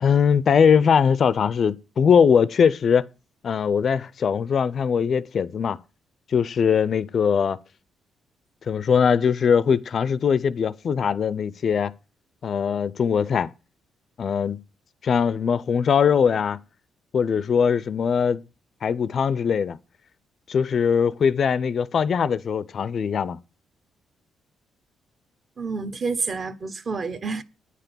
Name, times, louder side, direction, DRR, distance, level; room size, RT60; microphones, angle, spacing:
voice 1, 0.0-3.1 3.4-5.8 6.3-7.6 8.7-11.9 12.4-13.5 14.2-14.6 15.0-16.6 17.1-18.4 18.8-19.8 20.5-23.4, left 7 dB, 45° left, 0.4 m, -21 dB
voice 2, 25.6-27.4, right 4 dB, 35° right, 0.9 m, -29 dB
9.6 x 5.9 x 6.8 m
cardioid pair, 145°, 0 cm